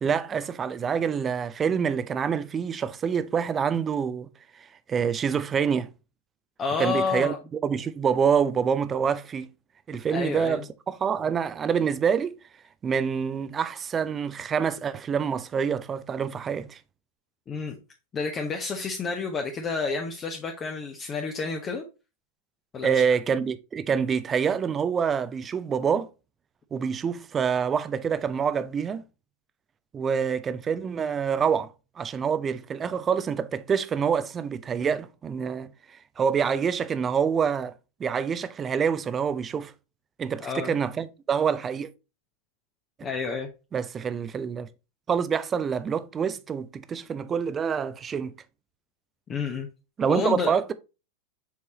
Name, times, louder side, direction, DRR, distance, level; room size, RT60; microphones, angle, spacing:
voice 1, 0.0-4.3 4.9-5.9 6.8-7.3 7.6-9.5 9.9-12.3 12.8-16.8 22.8-26.1 26.7-29.0 29.9-31.7 32.0-35.7 36.2-37.7 38.0-39.7 40.2-41.9 43.7-44.7 45.1-48.3 50.0-50.7, right 7 dB, 20° right, 0.5 m, -26 dB
voice 2, 6.6-7.4 10.1-10.7 17.5-17.7 18.1-21.9 22.7-23.0 40.4-40.7 43.0-43.5 49.3-49.7 50.1-50.5, left 4 dB, 25° left, 0.9 m, -30 dB
7.1 x 4.7 x 2.9 m
figure-of-eight pair, 90°, 0 cm